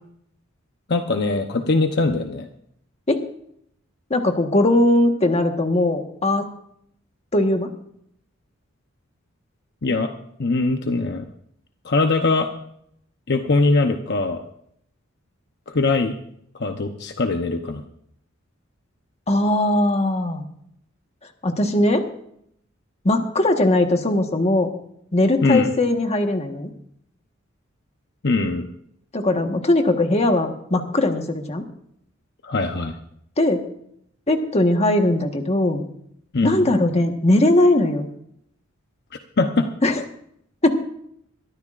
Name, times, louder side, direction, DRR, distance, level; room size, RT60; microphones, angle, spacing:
voice 1, 0.9-2.5 9.8-10.1 10.4-11.2 11.8-12.5 13.3-14.4 15.7-16.1 16.5-17.8 25.4-25.7 28.2-28.6 32.4-33.0 36.3-36.6 39.4-39.7, left 3 dB, 55° left, 5 dB, 0.9 m, -21 dB
voice 2, 4.1-6.5 7.3-7.7 19.3-20.4 21.4-22.1 23.0-24.7 25.1-26.7 29.1-31.6 33.4-33.6 34.3-35.9 36.4-38.1 39.8-40.0 40.6-40.8, left 1 dB, 30° left, 5 dB, 1.4 m, -19 dB
22.5 x 13.5 x 2.5 m, 0.70 s
head